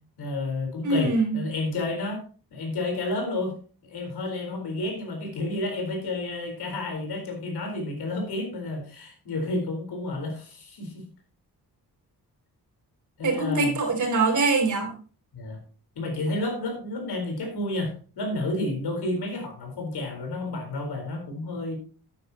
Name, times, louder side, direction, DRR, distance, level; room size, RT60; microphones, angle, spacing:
voice 1, 0.2-2.2 2.5-3.6 3.8-11.0 13.2-13.7 15.3-15.6 16.0-21.7, left 2 dB, 85° left, 2 dB, 4.3 m, -30 dB
voice 2, 0.8-1.4 13.2-14.9, right 3 dB, 50° right, 4 dB, 3.3 m, -23 dB
11.5 x 9.9 x 2.9 m, 0.38 s
wide cardioid pair, 165°, 38 cm